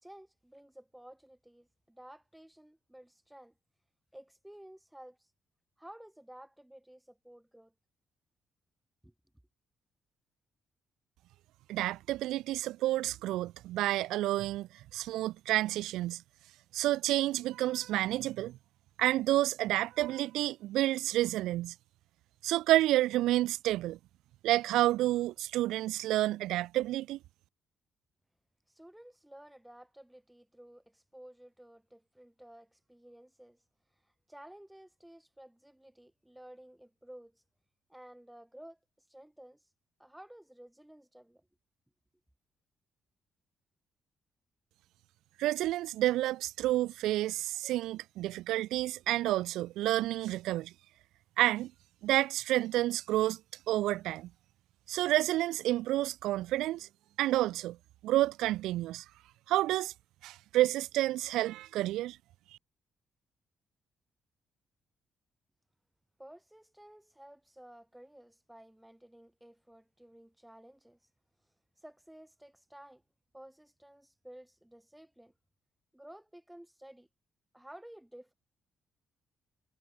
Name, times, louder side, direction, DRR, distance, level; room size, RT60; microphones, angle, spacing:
voice 1, 0.0-3.5 4.1-5.3 5.8-7.7 9.0-9.1 28.7-33.6 34.0-37.4 37.9-38.8 39.1-39.6 40.0-41.5 66.2-71.0 71.8-73.0 73.3-75.3 75.9-77.1 77.5-78.3, right 1 dB, 5° right, 3.4 m, -54 dB
voice 2, 11.7-16.2 16.7-18.6 19.0-21.7 22.4-24.0 24.4-27.2 45.4-50.7 51.4-51.7 52.0-53.4 53.7-54.3 54.9-56.9 57.2-57.8 58.0-59.0 59.5-59.9 60.2-62.2, right 15 dB, 90° right, 0.6 m, -29 dB
cardioid pair, 90°, 0 cm